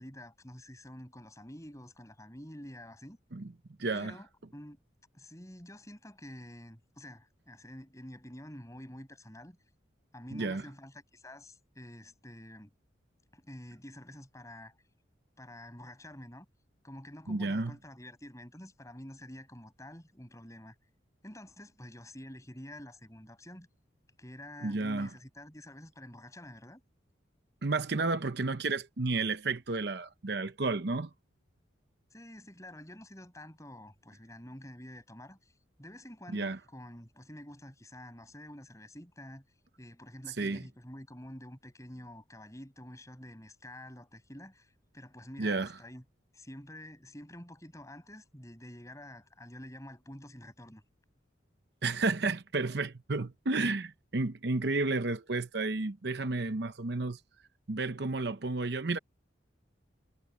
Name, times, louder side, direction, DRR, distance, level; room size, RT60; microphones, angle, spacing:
voice 1, 0.0-3.2 3.9-4.8 5.1-9.6 10.1-12.7 13.3-14.7 15.4-16.5 16.8-20.8 21.2-23.7 24.2-26.8 32.1-35.5 35.8-39.4 39.8-46.0 46.3-50.8, left 1 dB, 15° left, 7.0 m, -48 dB
voice 2, 3.8-4.1 10.3-10.6 17.3-17.7 24.6-25.1 27.6-31.1 36.3-36.6 40.4-40.6 45.4-45.7 51.8-57.2 57.7-59.0, right 3 dB, 60° right, 0.8 m, -31 dB
head